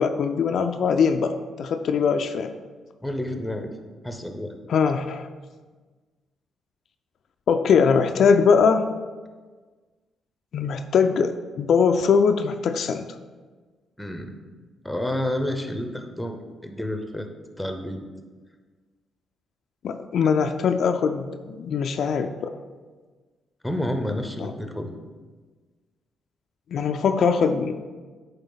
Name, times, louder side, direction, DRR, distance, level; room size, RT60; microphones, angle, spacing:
voice 1, 0.0-2.5 4.7-5.3 7.5-8.9 10.5-13.0 19.8-22.6 24.4-24.5 26.7-27.7, left 6 dB, 65° left, 7 dB, 0.3 m, -21 dB
voice 2, 3.0-3.7 4.0-4.5 14.0-14.4 14.8-16.4 16.6-17.3 17.6-18.0 23.6-25.0, left 1 dB, 5° left, 5 dB, 0.7 m, -29 dB
8.1 x 3.4 x 3.9 m, 1.4 s
cardioid pair, 90°, 0 cm